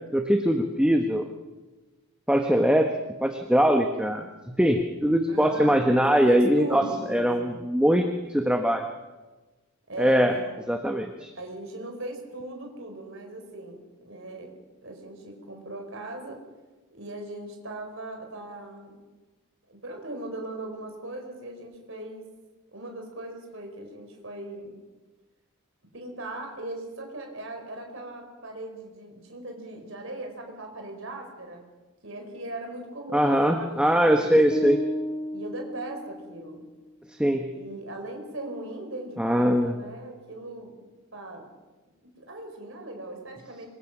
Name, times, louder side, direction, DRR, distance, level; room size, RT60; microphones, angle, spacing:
voice 1, 0.1-1.2 2.3-2.9 3.2-4.3 4.6-8.8 10.0-10.3 10.7-11.3 33.1-34.8 37.2-37.5 39.2-39.7, equal, 5° right, 4 dB, 1.0 m, -22 dB
voice 2, 5.3-5.9 6.2-7.7 9.9-10.6 11.3-14.5 14.8-16.4 16.9-19.0 19.7-22.2 22.7-24.8 25.9-31.6 32.0-34.4 35.3-36.6 37.5-40.7 41.1-41.5 42.2-43.7, right 2 dB, 60° right, 3 dB, 4.7 m, -39 dB
sound 1, 34.5-36.7, equal, 20° left, 1.2 m, -32 dB
26.0 x 22.5 x 6.0 m, 1.2 s
head